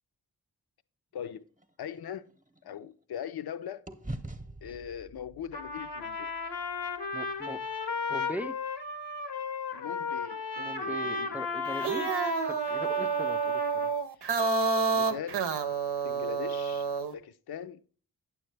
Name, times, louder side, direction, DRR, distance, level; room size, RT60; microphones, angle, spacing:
voice 1, 1.1-1.4 1.8-2.3 2.6-3.8 4.6-6.3 9.7-11.4 14.2-14.6 14.9-15.5 16.0-17.9, left 9 dB, 70° left, 0.5 m, -41 dB
sound 1, 1.2-3.5 3.9-8.1, right 1 dB, 20° right, 0.8 m, -46 dB
Trumpet, 5.5-13.9, left 4 dB, 90° left, 0.9 m, -35 dB
voice 2, 7.1-7.6 8.1-8.6 10.6-12.1 12.5-13.9, right 1 dB, 5° right, 0.4 m, -40 dB
sound 2, 11.6-17.1, right 5 dB, 80° right, 0.7 m, -29 dB
9.2 x 7.0 x 3.2 m
cardioid pair, 50°, 39 cm